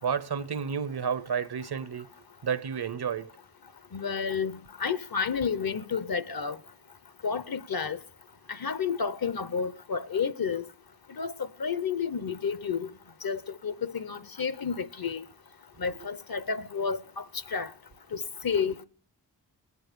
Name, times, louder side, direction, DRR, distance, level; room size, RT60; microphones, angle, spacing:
voice 1, 0.0-2.1 2.4-3.3, right 7 dB, 60° right, 0.8 m, -31 dB
voice 2, 3.9-6.6 7.2-8.0 8.5-10.6 11.2-11.3 11.6-12.9 13.2-15.2 15.8-17.2 17.5-17.7 18.1-18.9, left 6 dB, 55° left, 0.9 m, -31 dB
19.0 x 9.5 x 6.7 m
wide cardioid pair, 80°, 43 cm